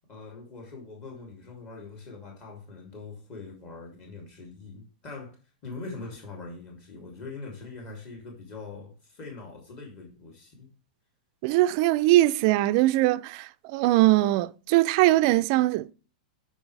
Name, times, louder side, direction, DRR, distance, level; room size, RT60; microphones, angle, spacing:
voice 1, 0.1-5.4 5.6-10.7, left 3 dB, 30° left, 3.1 m, -42 dB
voice 2, 11.4-15.9, right 16 dB, 40° right, 0.5 m, -21 dB
12.5 x 4.9 x 3.4 m
supercardioid pair, 155°, 4 cm